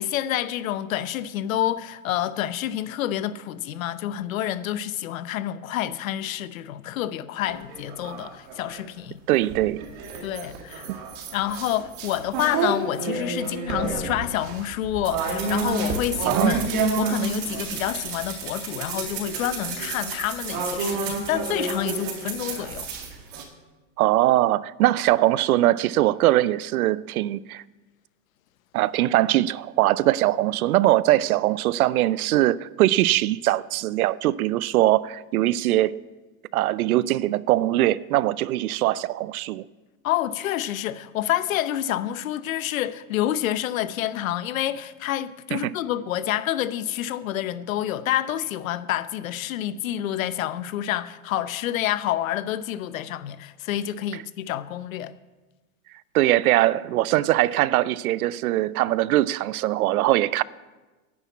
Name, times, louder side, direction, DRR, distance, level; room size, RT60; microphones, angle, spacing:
voice 1, 0.0-9.2 10.2-10.9 11.3-16.7 17.0-22.9 40.0-55.1, left 12 dB, 70° left, 0.8 m, -28 dB
sound 1, 7.5-8.8 9.4-18.3 18.7-23.4, right 3 dB, 40° right, 1.8 m, -30 dB
voice 2, 9.3-9.8 10.9-11.0 16.3-16.7 24.0-27.6 28.7-36.0 36.5-39.6 45.5-45.7 56.1-60.4, right 15 dB, 85° right, 0.6 m, -21 dB
sound 2, 15.0-22.9, right 6 dB, 60° right, 4.9 m, -35 dB
10.0 x 7.0 x 8.3 m
supercardioid pair, 170°, 42 cm